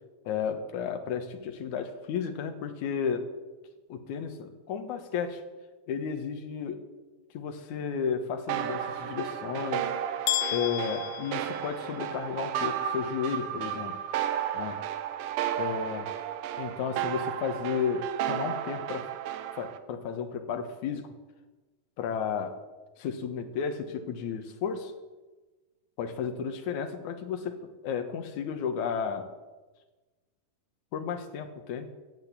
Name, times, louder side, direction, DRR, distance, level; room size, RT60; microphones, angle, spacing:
voice 1, 0.3-3.3 3.9-5.4 5.9-6.8 7.3-9.9 10.5-13.9 14.5-14.8 15.6-16.1 16.6-19.1 19.5-21.1 22.0-22.6 23.0-24.9 26.0-27.6 27.8-29.3 30.9-31.9, left 7 dB, 65° left, 6 dB, 2.5 m, -33 dB
sound 1, 8.5-19.8, right 10 dB, 80° right, 2.4 m, -33 dB
sound 2, 10.3-12.3, left 15 dB, 85° left, 2.3 m, -33 dB
15.0 x 8.2 x 8.3 m, 1.2 s
omnidirectional pair, 4.0 m